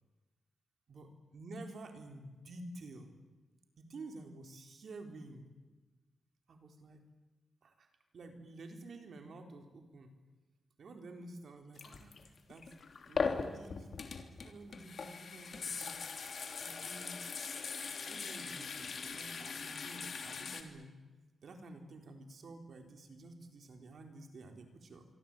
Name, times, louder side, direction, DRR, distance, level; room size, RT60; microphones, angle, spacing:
voice 1, 1.3-3.1 3.8-5.4 6.5-7.1 7.6-7.9 8.1-10.2 10.8-12.7 13.1-13.9 14.4-16.0 16.6-17.5 18.0-20.9 21.4-25.0, right 2 dB, 55° right, 5 dB, 4.1 m, -51 dB
sound 1, 11.8-20.6, left 5 dB, 50° left, 3.1 m, -40 dB
26.5 x 24.5 x 9.1 m, 1.2 s
wide cardioid pair, 155°, 0 cm